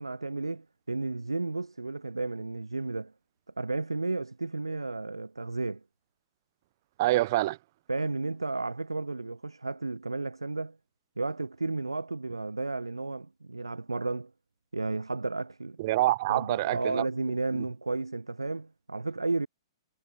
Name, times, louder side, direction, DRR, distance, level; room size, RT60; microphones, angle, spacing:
voice 1, 0.0-3.1 3.6-5.8 7.9-10.8 11.2-14.3 14.7-15.8 16.3-19.5, right 3 dB, 90° right, 2.5 m, -33 dB
voice 2, 7.0-7.6 15.8-17.0, right 17 dB, 45° right, 3.9 m, -26 dB
figure-of-eight pair, 120°, 2 cm